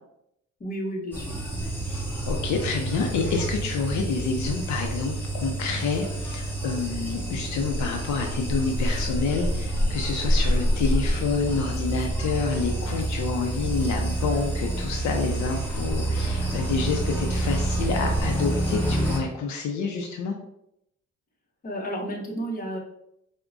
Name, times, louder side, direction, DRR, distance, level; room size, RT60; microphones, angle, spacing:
voice 1, 0.6-1.3 21.6-22.8, right 1 dB, 30° left, -1 dB, 0.9 m, -31 dB
sound 1, 1.1-19.2, right 1 dB, 5° left, 1.1 m, -27 dB
voice 2, 1.9-20.3, left 5 dB, 70° left, 2 dB, 0.5 m, -28 dB
4.4 x 2.1 x 2.5 m, 0.78 s
cardioid pair, 90°, 30 cm